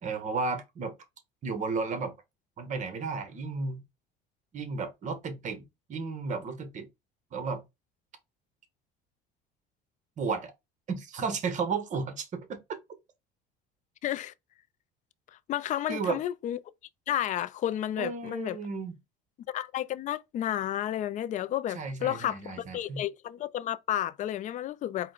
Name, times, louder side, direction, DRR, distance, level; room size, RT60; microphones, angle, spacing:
voice 1, 0.0-0.9 1.4-2.1 2.6-3.8 4.5-6.9 7.3-7.6 10.2-10.5 10.9-12.8 15.9-16.2 18.0-19.0 21.7-23.0, right 4 dB, 40° right, 1.1 m, -33 dB
voice 2, 14.0-14.3 15.5-16.6 17.1-18.6 19.5-25.1, left 12 dB, 40° left, 0.4 m, -31 dB
4.4 x 2.1 x 3.9 m
cardioid pair, 110°, 19 cm